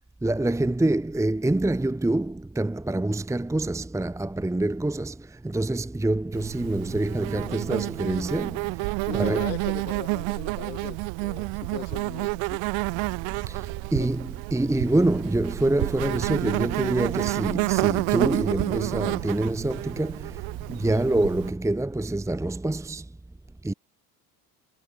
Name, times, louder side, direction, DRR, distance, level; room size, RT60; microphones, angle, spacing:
voice 1, 0.2-9.5 13.5-20.4 20.7-23.1 23.6-23.7, right 2 dB, 5° right, 1.1 m, -26 dB
Insect, 6.3-21.5, right 30 dB, 65° right, 1.3 m, -29 dB
voice 2, 9.0-12.6 14.0-14.1, left 12 dB, 90° left, 6.8 m, -39 dB
hypercardioid pair, 70°, 48 cm